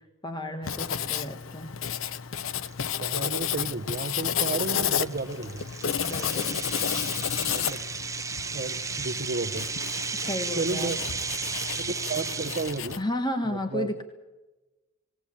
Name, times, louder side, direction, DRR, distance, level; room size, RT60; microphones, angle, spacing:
voice 1, 0.2-1.7 6.0-6.6 10.1-11.0 13.0-14.0, left 1 dB, 20° left, 6 dB, 1.3 m, -32 dB
Writing, 0.6-13.0, left 8 dB, 75° left, 0.6 m, -32 dB
sound 1, 2.7-2.8 3.3-3.5 4.0-4.1 4.6-12.9, right 5 dB, 15° right, 0.7 m, -34 dB
voice 2, 3.0-5.7 7.5-7.8 8.5-9.7 10.5-11.0 11.8-13.0 13.4-13.9, right 3 dB, 50° right, 4 dB, 0.8 m, -32 dB
20.0 x 18.0 x 8.5 m, 1.2 s
head